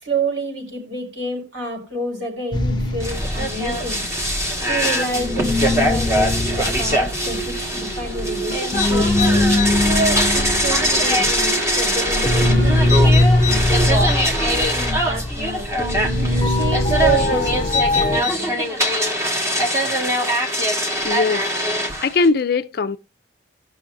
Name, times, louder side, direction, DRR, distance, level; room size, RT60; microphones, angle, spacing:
voice 1, 0.0-4.0 4.7-9.1 9.8-13.1 13.4-15.8 16.4-18.6, right 2 dB, 75° right, 4.8 m, -28 dB
sound 1, 2.5-4.9 5.1-18.2, left 2 dB, 25° left, 0.7 m, -21 dB
sound 2, 3.0-22.3, equal, 15° right, 1.5 m, -22 dB
sound 3, 3.3-13.8, right 3 dB, 40° right, 3.6 m, -31 dB
voice 2, 21.0-21.5 22.0-23.0, left 4 dB, 55° left, 0.4 m, -20 dB
18.5 x 6.3 x 2.6 m
head